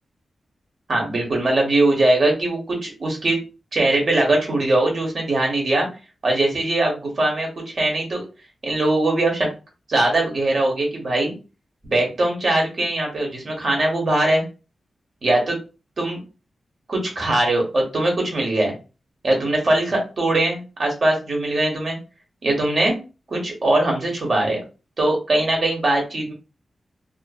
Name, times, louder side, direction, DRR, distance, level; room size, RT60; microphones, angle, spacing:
voice 1, 0.9-3.4 3.7-5.9 6.2-8.2 8.6-9.5 9.9-11.3 11.8-14.4 15.2-15.6 16.0-16.2 16.9-18.7 19.2-22.0 22.4-23.0 23.3-24.6 25.0-26.3, right 2 dB, 50° right, 1 dB, 1.0 m, -21 dB
2.5 x 2.4 x 2.3 m, 0.31 s
wide cardioid pair, 105°, 0 cm